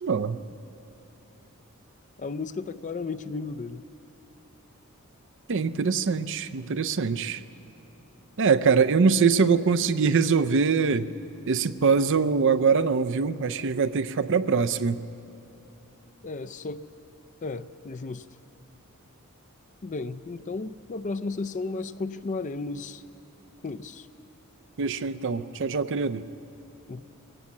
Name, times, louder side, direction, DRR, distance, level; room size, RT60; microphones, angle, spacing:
voice 1, 0.0-0.4 5.5-7.4 8.4-11.1 11.5-15.0 24.8-26.2, right 5 dB, 55° right, 12 dB, 0.5 m, -23 dB
voice 2, 2.2-3.8 16.2-16.8 17.4-18.2 19.8-23.0 23.6-24.1 26.9-27.1, left 3 dB, 35° left, 11 dB, 0.4 m, -34 dB
22.0 x 17.0 x 7.2 m, 2.8 s
head